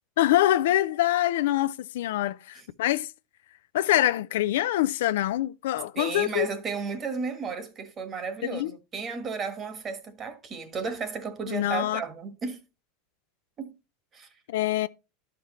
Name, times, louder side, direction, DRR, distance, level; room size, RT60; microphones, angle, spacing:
voice 1, 0.2-3.1 3.7-6.5 8.4-8.7 11.5-12.0 14.5-14.9, left 14 dB, 80° left, 0.4 m, -25 dB
voice 2, 5.9-12.6 13.6-13.7 14.1-14.3, right 5 dB, 30° right, 1.4 m, -33 dB
11.5 x 5.2 x 3.0 m
supercardioid pair, 115°, 0 cm